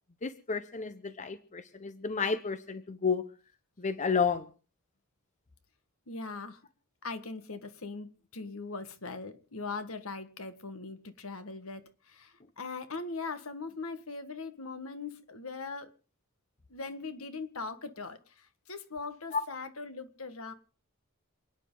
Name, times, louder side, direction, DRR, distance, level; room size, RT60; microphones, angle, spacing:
voice 1, 0.2-3.2 3.8-4.5 19.3-19.4, left 5 dB, 35° left, 11 dB, 0.9 m, -31 dB
voice 2, 6.1-6.6 7.0-15.9 16.7-20.5, left 4 dB, 70° left, 10 dB, 1.6 m, -40 dB
28.0 x 9.9 x 3.9 m, 0.37 s
head